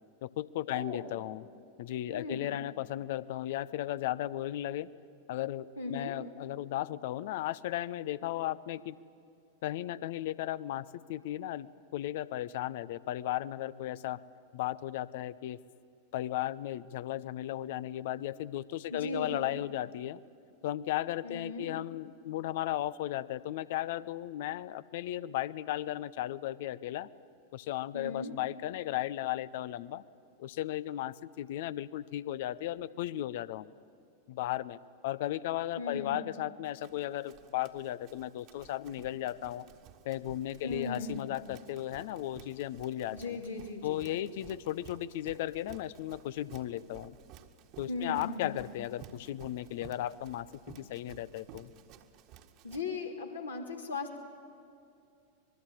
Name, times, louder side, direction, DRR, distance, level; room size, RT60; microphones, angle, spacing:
voice 1, 0.2-1.4 1.8-4.9 5.3-9.0 9.6-14.2 14.5-15.6 16.1-20.2 20.6-27.1 27.5-30.0 30.4-33.7 34.3-39.7 40.0-43.4 43.8-47.2 47.8-51.7, left 13 dB, 50° left, 18 dB, 0.7 m, -35 dB
voice 2, 0.7-1.1 2.1-2.5 5.8-6.2 18.9-19.4 21.2-21.7 27.9-28.3 35.8-36.2 40.6-41.2 43.1-44.1 47.9-48.6 52.6-54.2, left 3 dB, 75° left, 1 dB, 3.2 m, -38 dB
Run, 36.7-52.8, right 9 dB, 40° right, 1.7 m, -55 dB
25.5 x 21.0 x 9.0 m, 2.4 s
figure-of-eight pair, 90°, 0 cm